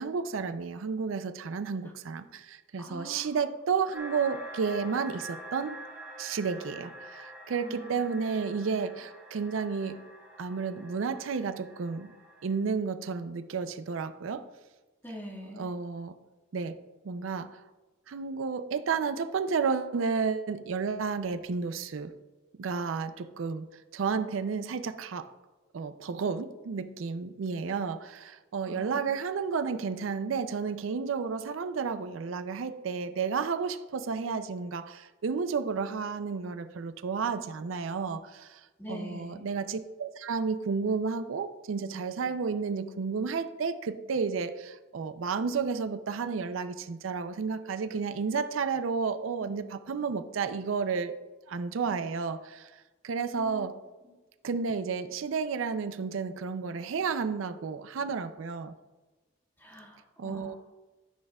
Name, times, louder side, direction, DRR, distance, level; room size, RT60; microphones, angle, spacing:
voice 1, 0.0-5.8 6.2-10.0 10.4-12.1 12.4-14.5 15.5-16.1 16.5-16.8 17.0-17.6 18.1-22.1 22.6-25.3 25.7-38.6 38.9-51.2 51.5-52.7 53.0-53.7 54.4-58.7 60.2-60.5, right 5 dB, 90° right, 12 dB, 0.4 m, -32 dB
voice 2, 2.8-3.3 7.6-8.0 15.0-15.7 28.7-29.1 38.8-39.4 53.4-53.7 59.6-60.6, equal, 10° left, -3 dB, 1.7 m, -43 dB
sound 1, 3.9-12.5, equal, 10° right, 1.4 m, -46 dB
13.0 x 6.4 x 2.3 m, 1.2 s
head